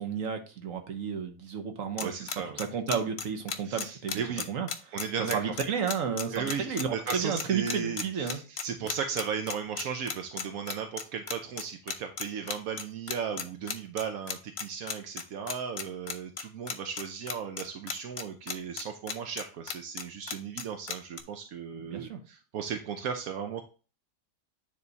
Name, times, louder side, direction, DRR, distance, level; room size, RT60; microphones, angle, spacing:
voice 1, 0.0-5.0 5.3-8.4 21.8-22.2, right 6 dB, 70° right, 6 dB, 1.4 m, -32 dB
sound 1, 2.0-21.2, left 7 dB, 55° left, 0.9 m, -34 dB
voice 2, 2.0-2.6 3.6-4.4 4.9-5.4 6.3-23.6, right 7 dB, 85° right, 5 dB, 1.2 m, -36 dB
9.5 x 3.5 x 4.0 m, 0.35 s
omnidirectional pair, 1.4 m